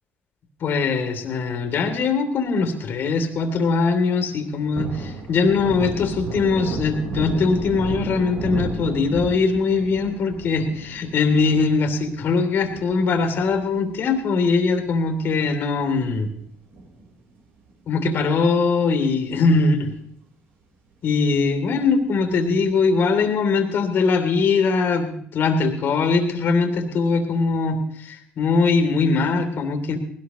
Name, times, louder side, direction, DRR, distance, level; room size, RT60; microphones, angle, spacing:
voice 1, 0.6-16.3 17.9-19.9 21.0-30.0, left 4 dB, 65° left, 6 dB, 3.0 m, -21 dB
Thunder, 4.3-15.1 15.4-15.5 15.9-17.4 17.7-17.8 18.2-19.0 19.4-19.5 19.8-19.9 22.3-22.9, right 2 dB, 80° right, 4.3 m, -34 dB
19.5 x 18.0 x 3.1 m, 0.65 s
supercardioid pair, 65°, 4 cm